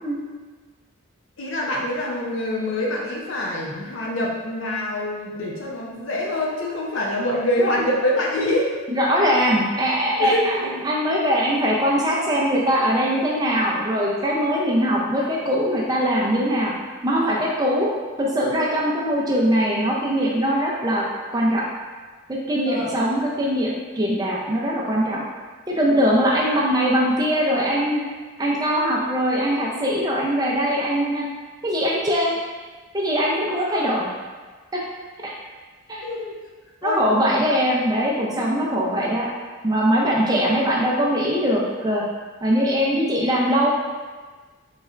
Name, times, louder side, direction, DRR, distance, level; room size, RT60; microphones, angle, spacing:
voice 1, 1.4-8.7 10.2-10.7 22.6-22.9 33.4-33.8 36.0-36.3 36.8-37.4 40.3-40.4, left 1 dB, 65° left, -2 dB, 0.6 m, -25 dB
voice 2, 8.9-16.7 17.0-17.9 18.2-21.1 21.3-21.6 22.3-25.2 25.7-28.0 28.4-31.2 31.6-32.3 32.9-34.1 34.7-34.8 35.2-35.3 35.9-36.0 36.8-39.3 39.6-42.0 42.4-43.7, equal, 20° right, -3 dB, 0.4 m, -21 dB
4.1 x 3.2 x 2.4 m, 1.4 s
head